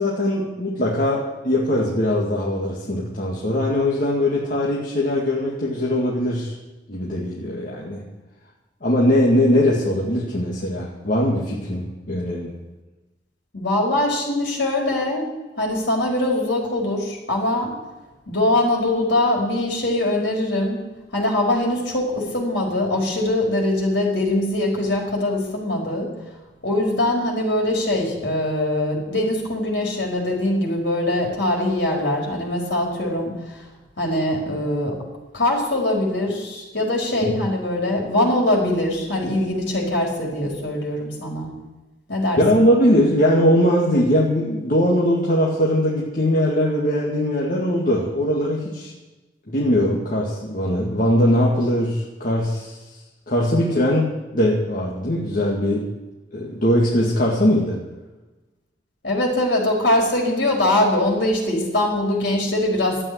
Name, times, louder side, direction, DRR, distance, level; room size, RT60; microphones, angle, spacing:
voice 1, 0.0-6.5 6.9-8.0 8.8-12.5 37.2-37.3 42.4-48.9 49.5-52.8 53.3-55.9 56.3-57.8, left 1 dB, 50° left, -4 dB, 2.1 m, -20 dB
voice 2, 13.5-15.3 15.6-17.7 18.3-20.8 21.1-26.1 26.6-33.6 34.0-35.0 35.3-41.5 42.1-42.6 59.0-63.0, left 1 dB, 70° left, -1 dB, 4.8 m, -22 dB
12.5 x 9.1 x 9.8 m, 1.1 s
head